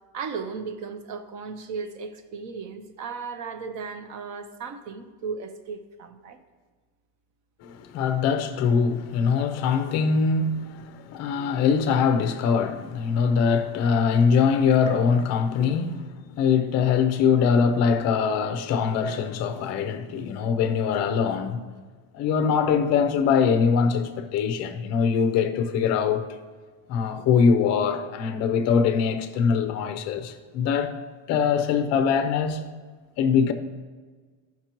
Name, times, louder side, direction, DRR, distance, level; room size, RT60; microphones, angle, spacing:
voice 1, 0.1-6.4, right 5 dB, 40° right, 0.7 m, -36 dB
voice 2, 7.6-21.6 22.1-26.3 26.9-30.9 31.3-32.6 33.2-33.5, left 6 dB, 35° left, 0.5 m, -23 dB
15.0 x 5.9 x 3.0 m
cardioid pair, 175°, 47 cm